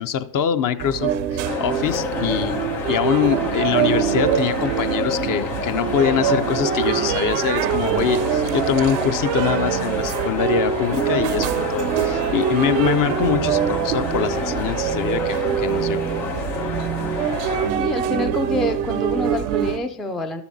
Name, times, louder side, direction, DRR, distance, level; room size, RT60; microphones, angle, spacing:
voice 1, 0.0-2.6 2.9-16.0, left 9 dB, 40° left, 0.6 m, -24 dB
sound 1, 0.8-19.8, right 9 dB, 75° right, 0.6 m, -24 dB
sound 2, 1.4-17.7, left 5 dB, 85° left, 1.4 m, -30 dB
voice 2, 17.7-20.4, left 1 dB, ahead, 0.3 m, -26 dB
12.5 x 6.9 x 2.7 m
hypercardioid pair, 70°, 49 cm